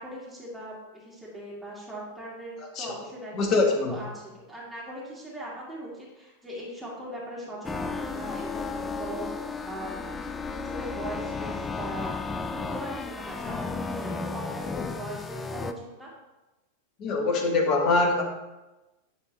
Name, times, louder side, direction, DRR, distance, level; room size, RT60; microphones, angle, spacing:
voice 1, 0.0-3.3 3.9-10.2 10.4-16.1, right 1 dB, ahead, -7 dB, 1.9 m, -40 dB
voice 2, 3.3-3.9 17.0-18.2, left 3 dB, 35° left, 3 dB, 1.1 m, -23 dB
sound 1, 7.6-15.7, left 4 dB, 15° left, 0.4 m, -33 dB
9.7 x 3.5 x 3.2 m, 1.0 s
figure-of-eight pair, 90°, 0 cm